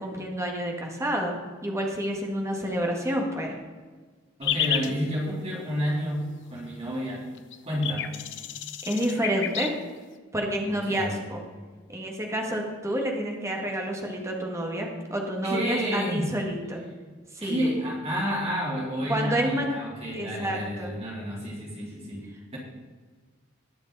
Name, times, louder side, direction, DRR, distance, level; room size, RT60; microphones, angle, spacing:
voice 1, 0.0-3.6 8.9-9.7 10.3-11.4 11.9-16.8 17.3-17.7 19.1-19.7 20.1-20.9, right 1 dB, 15° right, 1 dB, 1.9 m, -29 dB
sound 1, 4.4-4.9 7.1-7.2 7.4-9.7, left 10 dB, 65° left, 0.8 m, -30 dB
voice 2, 4.4-7.3 7.7-8.1 10.7-11.2 15.4-16.3 17.4-22.6, equal, 30° right, -5 dB, 3.6 m, -30 dB
20.5 x 6.9 x 4.1 m, 1.4 s
head